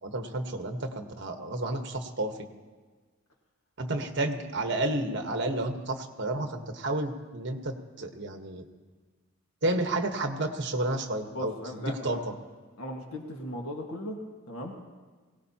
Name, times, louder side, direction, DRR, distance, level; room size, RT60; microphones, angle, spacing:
voice 1, 0.0-2.5 3.8-8.7 9.6-12.3, right 2 dB, 55° right, 5 dB, 1.2 m, -31 dB
voice 2, 11.3-12.2 12.8-14.2 14.5-14.8, left 1 dB, 80° left, 1 dB, 1.7 m, -37 dB
22.5 x 17.5 x 2.9 m, 1.4 s
head